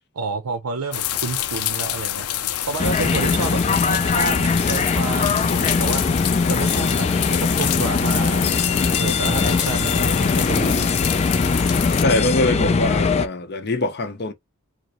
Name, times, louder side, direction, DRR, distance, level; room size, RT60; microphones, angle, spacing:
voice 1, 0.1-6.2 6.5-11.0 12.6-12.9, right 4 dB, 80° right, 0.5 m, -30 dB
sound 1, 0.9-12.0, left 12 dB, 85° left, 0.5 m, -27 dB
sound 2, 2.8-13.3, left 4 dB, 30° left, 0.4 m, -21 dB
voice 2, 12.0-14.3, left 2 dB, 50° left, 0.7 m, -23 dB
4.4 x 2.0 x 2.9 m
head